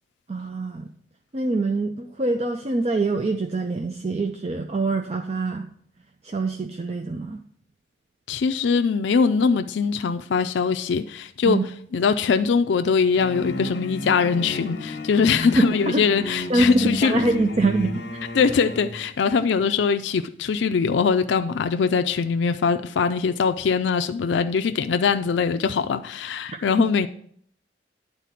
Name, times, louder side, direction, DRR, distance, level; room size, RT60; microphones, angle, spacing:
voice 1, 0.3-0.9 1.3-5.7 6.2-7.4 11.5-11.6 15.6-16.0 16.5-18.2 26.5-26.9, right 2 dB, 35° right, 5 dB, 0.4 m, -24 dB
voice 2, 8.3-11.6 11.9-17.2 18.3-27.1, left 5 dB, 75° left, 8 dB, 0.4 m, -22 dB
sound 1, 13.1-19.0, left 1 dB, 60° left, 1.2 m, -32 dB
9.9 x 4.1 x 5.8 m, 0.63 s
head